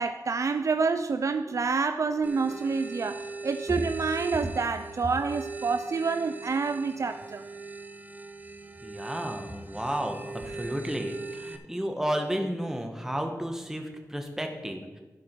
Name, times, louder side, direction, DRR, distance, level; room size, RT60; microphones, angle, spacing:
voice 1, 0.0-7.4, right 4 dB, 55° right, 0.4 m, -28 dB
sound 1, 2.2-11.6, right 3 dB, 25° right, 0.8 m, -40 dB
voice 2, 8.8-14.8, equal, 5° right, 1.2 m, -32 dB
14.5 x 5.0 x 4.5 m
wide cardioid pair, 105°, 7 cm